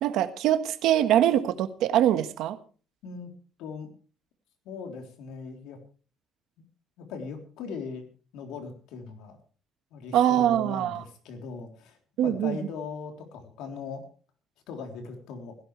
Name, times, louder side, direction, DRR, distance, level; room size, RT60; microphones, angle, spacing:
voice 1, 0.0-2.6 10.1-11.0 12.2-12.6, right 11 dB, 70° right, 9 dB, 1.5 m, -23 dB
voice 2, 3.6-3.9 4.7-5.8 7.0-8.1 8.3-9.4 9.9-14.0 14.7-15.6, left 5 dB, 85° left, 3 dB, 3.6 m, -39 dB
17.0 x 16.5 x 3.4 m, 0.39 s
cardioid pair, 160°, 0 cm